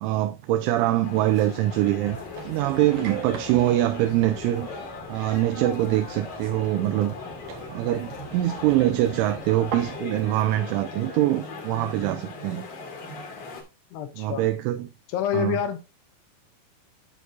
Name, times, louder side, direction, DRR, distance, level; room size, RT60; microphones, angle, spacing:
voice 1, 0.0-2.2 2.4-4.8 5.1-7.1 7.7-12.7 14.2-14.9 15.3-15.6, right 14 dB, 85° right, 3.0 m, -24 dB
sound 1, 1.0-13.6, left 3 dB, 50° left, 2.6 m, -38 dB
sound 2, 2.0-10.0, right 5 dB, 60° right, 2.3 m, -42 dB
voice 2, 13.9-14.4 15.1-15.8, left 9 dB, 75° left, 2.7 m, -27 dB
9.3 x 7.0 x 2.7 m
omnidirectional pair, 5.5 m